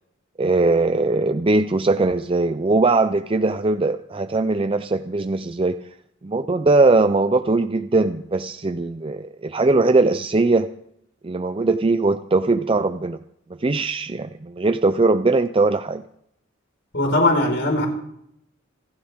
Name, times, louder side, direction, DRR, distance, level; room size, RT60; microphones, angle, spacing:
voice 1, 0.4-5.8 6.2-10.7 11.2-13.2 13.6-16.0, right 3 dB, 25° right, 9 dB, 0.5 m, -20 dB
voice 2, 16.9-17.9, left 2 dB, 60° left, 2 dB, 4.9 m, -19 dB
26.5 x 12.5 x 3.6 m, 0.73 s
head